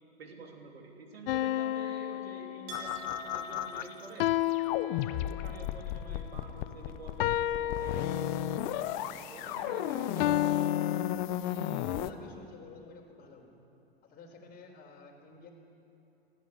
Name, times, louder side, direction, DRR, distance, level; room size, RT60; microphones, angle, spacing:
voice 1, 0.2-4.3 4.9-8.3 9.1-10.5, right 3 dB, 80° right, 2 dB, 3.4 m, -48 dB
sound 1, 1.3-3.1 4.2-5.7 7.2-8.7 10.2-11.3, left 13 dB, 65° left, 0.5 m, -31 dB
sound 2, 2.7-4.2 4.5-12.1, left 12 dB, 50° left, 1.0 m, -34 dB
Chink clink, 2.7-8.2 8.5-9.4, right 6 dB, 60° right, 4.9 m, -52 dB
voice 2, 11.9-13.5 14.0-15.5, left 4 dB, 30° left, 2 dB, 4.2 m, -51 dB
18.0 x 15.5 x 9.8 m, 2.9 s
hypercardioid pair, 100°, 30 cm